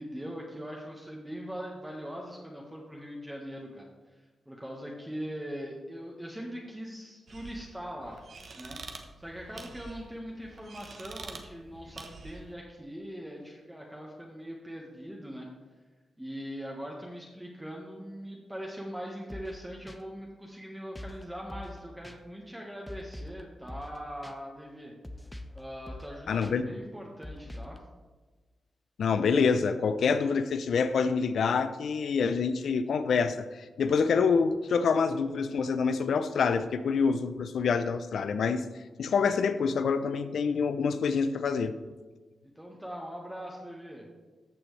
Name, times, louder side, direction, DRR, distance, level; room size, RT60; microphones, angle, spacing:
voice 1, 0.0-8.2 8.5-15.5 16.2-24.9 25.5-27.8 38.6-38.7 42.5-44.1, equal, 5° right, -2 dB, 1.4 m, -41 dB
sound 1, 7.3-12.5, right 3 dB, 60° right, 1.0 m, -47 dB
sound 2, 19.3-19.6 19.9-20.0 21.0-21.2 21.5-21.8 22.0-22.2 22.9-23.4 23.7-24.0 24.2-24.3 25.0-25.6 25.9-26.1 26.4-26.5 27.2-27.8, left 1 dB, 10° left, 0.8 m, -43 dB
voice 2, 26.3-26.7 29.0-38.6 39.0-41.7, left 5 dB, 75° left, 12 dB, 0.5 m, -26 dB
14.0 x 6.1 x 3.3 m, 1.3 s
cardioid pair, 70°, 0 cm